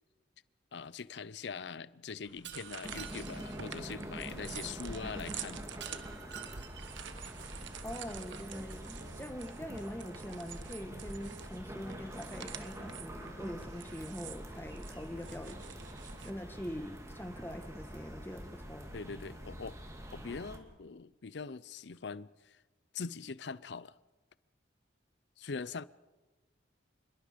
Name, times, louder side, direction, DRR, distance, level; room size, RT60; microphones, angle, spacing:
voice 1, 0.7-5.6 18.9-19.8 20.1-22.6 22.9-24.0 25.4-25.9, left 5 dB, 65° left, 0.6 m, -42 dB
sound 1, 2.2-16.3, right 8 dB, 80° right, 1.3 m, -48 dB
Shatter, 2.4-3.6 5.8-7.1, right 9 dB, 65° right, 1.6 m, -49 dB
sound 2, 2.8-20.6, equal, 15° right, 2.4 m, -46 dB
voice 2, 7.8-15.6 16.2-18.9, equal, 10° left, 1.5 m, -43 dB
28.0 x 21.5 x 5.2 m
head